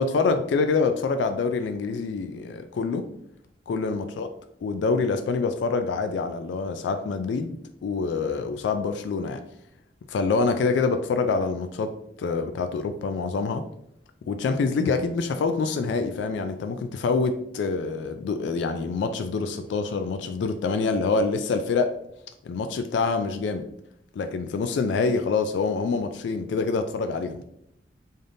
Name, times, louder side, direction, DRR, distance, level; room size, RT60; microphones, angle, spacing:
voice 1, 0.0-3.1 3.7-4.3 4.6-9.4 10.1-13.7 14.3-21.9 22.4-23.7 24.1-27.4, left 4 dB, 75° left, 8 dB, 0.3 m, -26 dB
3.9 x 3.4 x 2.6 m, 0.73 s
head